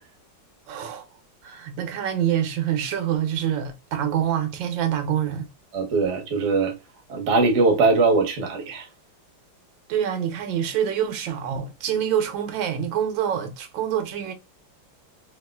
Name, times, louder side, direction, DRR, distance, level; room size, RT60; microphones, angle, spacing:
voice 1, 0.7-1.0 1.4-5.5 9.9-14.3, right 9 dB, 80° right, 1.4 m, -26 dB
voice 2, 5.7-6.7 7.1-8.9, right 3 dB, 55° right, 0.8 m, -21 dB
4.1 x 2.3 x 2.2 m
omnidirectional pair, 2.1 m